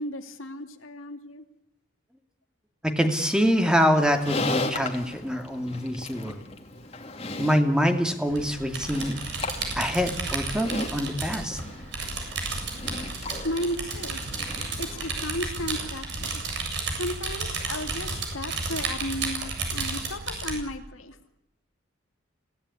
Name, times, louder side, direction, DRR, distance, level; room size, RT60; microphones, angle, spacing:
voice 1, 0.0-1.4 13.4-14.2 14.8-16.5 17.0-21.2, left 1 dB, 85° left, 6 dB, 2.7 m, -34 dB
voice 2, 2.8-6.4 7.4-9.2 9.8-11.6, equal, 5° right, 5 dB, 2.4 m, -25 dB
Livestock farm animals working animals, 3.9-15.2, left 2 dB, 30° left, 2.6 m, -37 dB
sound 1, 8.3-20.6, right 4 dB, 60° right, 7.6 m, -32 dB
25.5 x 17.5 x 9.8 m, 0.90 s
head